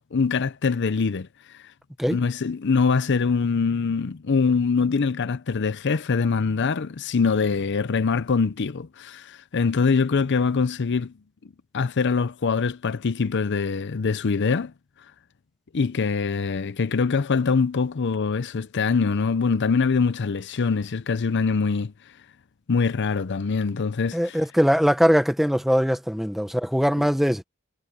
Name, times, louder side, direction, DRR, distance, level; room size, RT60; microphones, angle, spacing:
voice 1, 0.1-1.3 2.1-11.1 11.7-14.7 15.7-21.9 22.7-24.4 27.0-27.1, left 5 dB, 55° left, 0.6 m, -23 dB
voice 2, 24.1-27.4, equal, ahead, 0.8 m, -21 dB
head